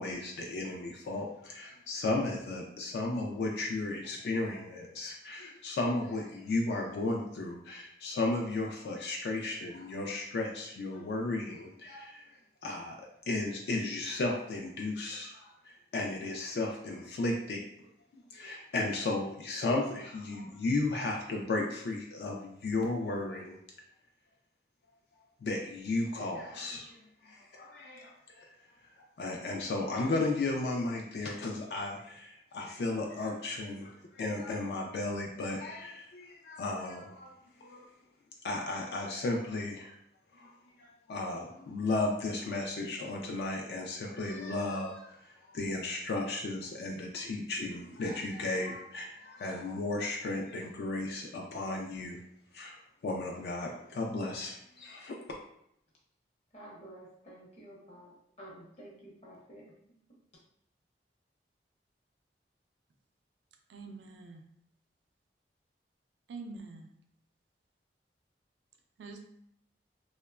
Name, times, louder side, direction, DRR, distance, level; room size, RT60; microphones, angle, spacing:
voice 1, 0.0-12.2 12.6-13.0 13.3-17.6 18.1-23.6 25.4-28.5 29.2-37.3 37.6-37.9 38.4-39.9 40.3-40.5 40.8-52.2 52.5-52.8 53.0-55.2, left 2 dB, 65° left, 1 dB, 0.3 m, -34 dB
voice 2, 56.5-59.7, right 1 dB, 40° left, -3 dB, 0.7 m, -51 dB
voice 3, 63.7-64.4 66.3-66.9 69.0-69.2, right 3 dB, 85° right, 5 dB, 0.3 m, -45 dB
2.8 x 2.1 x 2.3 m, 0.73 s
head